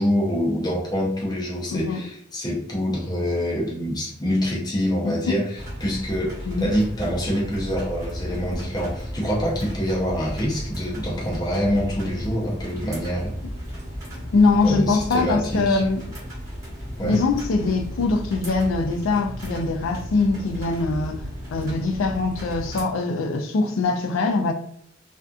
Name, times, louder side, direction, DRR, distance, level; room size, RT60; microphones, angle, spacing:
voice 1, 0.0-13.3 14.6-15.8 17.0-17.2, equal, 20° left, 0.6 m, -25 dB
voice 2, 1.7-2.0 5.0-5.4 6.5-6.7 14.3-16.0 17.0-21.2 21.5-24.5, left 3 dB, 85° left, 0.4 m, -22 dB
sound 1, 5.5-22.8, equal, 15° right, 1.1 m, -34 dB
2.5 x 2.4 x 2.3 m
head